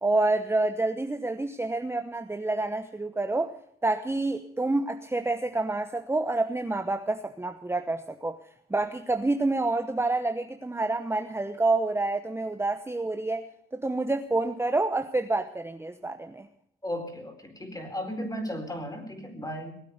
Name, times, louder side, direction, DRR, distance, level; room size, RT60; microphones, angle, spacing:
voice 1, 0.0-3.6 3.8-8.4 8.7-13.5 13.7-16.5, right 2 dB, 10° right, 7 dB, 0.9 m, -28 dB
voice 2, 16.8-19.7, equal, 15° left, 5 dB, 4.5 m, -35 dB
19.5 x 8.5 x 8.1 m, 0.72 s
cardioid pair, 70°, 21 cm